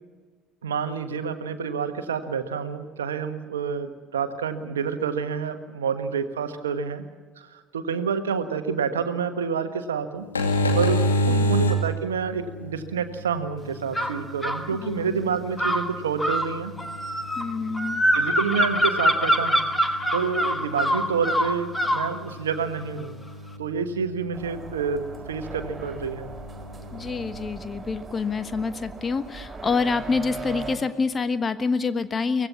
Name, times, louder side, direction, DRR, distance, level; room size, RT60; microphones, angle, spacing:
voice 1, 0.6-7.0 7.4-10.3 10.7-16.7 18.1-23.1 23.6-25.0 25.3-26.3, right 6 dB, 75° right, 10 dB, 1.3 m, -28 dB
sound 1, 10.2-27.5, equal, 80° left, 2.3 m, -31 dB
voice 2, 11.3-11.7 14.8-15.2 17.4-18.0 26.9-32.5, left 4 dB, 30° left, 12 dB, 1.3 m, -27 dB
sound 2, 13.9-14.6 15.6-22.1, equal, 10° left, 2.1 m, -24 dB
sound 3, 24.3-30.8, right 3 dB, 20° right, 4.6 m, -39 dB
24.0 x 18.0 x 7.3 m, 1.4 s
figure-of-eight pair, 60°, 0 cm